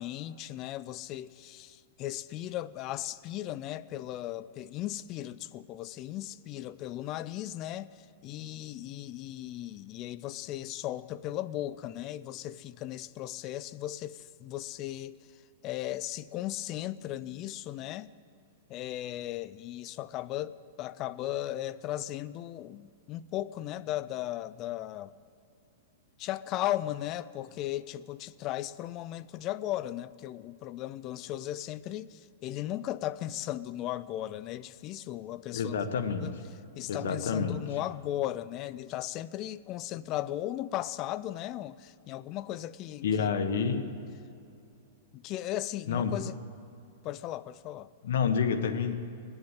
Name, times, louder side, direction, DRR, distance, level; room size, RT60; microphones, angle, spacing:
voice 1, 0.0-18.1 18.7-25.1 26.2-35.8 36.2-36.3 36.8-43.3 45.1-46.3 47.0-47.9, left 13 dB, 30° left, 0.4 m, -36 dB
voice 2, 35.5-36.3 36.9-37.6 43.0-43.8 45.9-46.1 48.0-48.9, left 6 dB, 75° left, 1.3 m, -28 dB
20.0 x 7.8 x 8.9 m
supercardioid pair, 165°, 0 cm